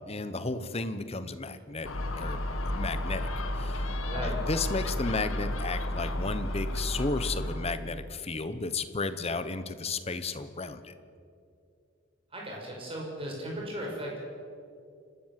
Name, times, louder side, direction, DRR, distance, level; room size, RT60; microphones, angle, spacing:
voice 1, 0.1-1.9 2.2-2.4 2.7-10.9, left 3 dB, 30° left, 12 dB, 1.0 m, -33 dB
Gull seagull, 1.8-7.7, left 1 dB, 85° left, 1.6 m, -32 dB
voice 2, 4.0-4.4 12.3-14.2, right 1 dB, 30° right, -2 dB, 5.9 m, -37 dB
28.5 x 13.0 x 7.6 m, 2.5 s
head